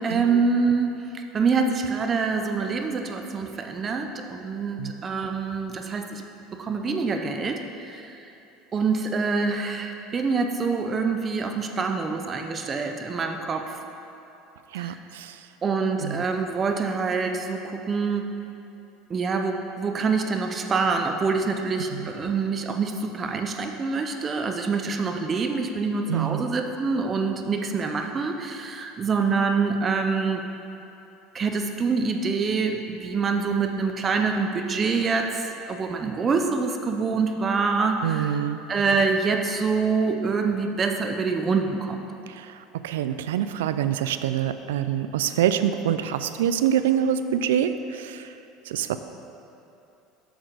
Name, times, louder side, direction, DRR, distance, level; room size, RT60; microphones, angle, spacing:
voice 1, 0.0-6.3 6.5-8.2 8.7-13.8 14.7-15.0 15.6-18.5 19.1-30.4 31.3-35.4 35.7-38.4 38.7-42.0, right 4 dB, 30° right, 5 dB, 0.7 m, -26 dB
voice 2, 14.7-15.3 16.0-16.2 21.9-22.1 26.1-26.4 38.0-38.6 42.4-42.5 42.8-48.2 48.7-49.0, right 9 dB, 85° right, 11 dB, 0.3 m, -25 dB
7.8 x 6.2 x 4.0 m, 2.8 s
supercardioid pair, 95°, 0 cm